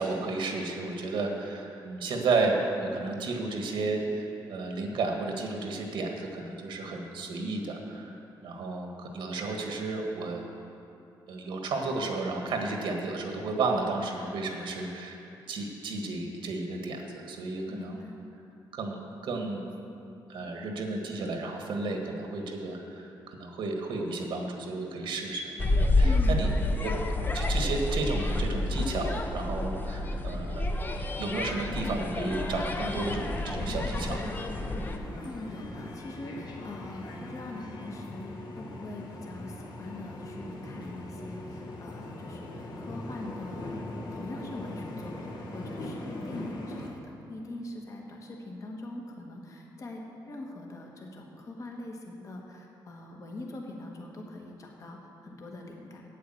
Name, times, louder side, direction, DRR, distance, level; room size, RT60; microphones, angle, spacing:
voice 1, 0.0-8.1 8.4-10.4 11.3-15.2 15.5-18.0 18.7-19.7 20.3-26.5 26.8-26.9 27.3-30.7 31.2-34.3, right 3 dB, 75° right, 2 dB, 1.6 m, -32 dB
voice 2, 17.7-18.2 26.0-26.7 35.2-43.9 44.1-56.0, left 2 dB, 40° left, 0 dB, 1.4 m, -42 dB
sound 1, 25.6-35.0, left 2 dB, 25° left, 0.7 m, -29 dB
sound 2, 32.9-46.9, left 1 dB, 60° left, 1.6 m, -41 dB
8.6 x 8.4 x 7.7 m, 2.7 s
cardioid pair, 130°, 8 cm